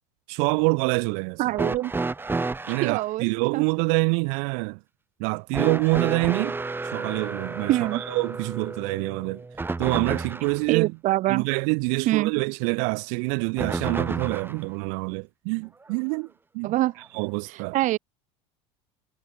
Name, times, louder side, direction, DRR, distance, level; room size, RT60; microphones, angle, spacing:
voice 1, 0.3-1.4 2.7-4.8 5.2-6.6 6.9-9.4 9.8-10.9 11.3-16.3 16.5-16.7 17.1-17.8, right 40 dB or more, 70° right, 2.0 m, -26 dB
voice 2, 1.4-1.9 2.8-3.3 3.5-3.6 7.7-8.0 10.7-11.4 12.1-12.3 16.6-16.9 17.5-18.0, right 16 dB, 50° right, 2.1 m, -24 dB
sound 1, 1.5-3.0 5.5-10.6 13.6-14.6 15.9-16.0 17.0-17.1, right 3 dB, 15° right, 2.3 m, -31 dB
supercardioid pair, 100°, 16 cm